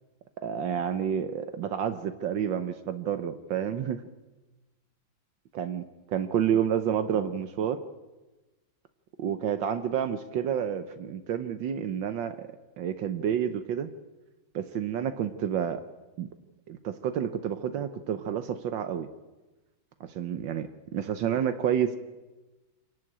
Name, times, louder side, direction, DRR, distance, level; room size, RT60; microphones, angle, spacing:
voice 1, 0.4-4.0 5.5-7.8 9.2-12.5 12.8-13.9 14.5-15.8 16.2-16.3 16.7-19.1 20.0-22.0, right 9 dB, 75° right, 10 dB, 1.6 m, -29 dB
26.0 x 11.5 x 8.7 m, 1.1 s
omnidirectional pair, 2.1 m